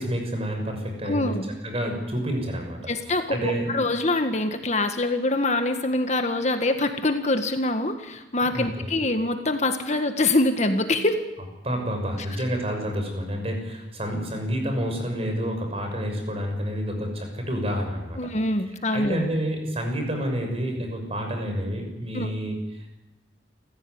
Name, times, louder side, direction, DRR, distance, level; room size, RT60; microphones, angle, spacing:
voice 1, 0.0-1.4 1.6-3.7 8.5-8.9 11.6-18.2 18.6-22.9, equal, 35° right, 3 dB, 6.5 m, -29 dB
voice 2, 1.1-1.5 2.9-11.2 18.2-19.3 22.1-22.3, left 2 dB, 40° left, 7 dB, 1.6 m, -24 dB
28.5 x 15.5 x 9.6 m, 1.0 s
head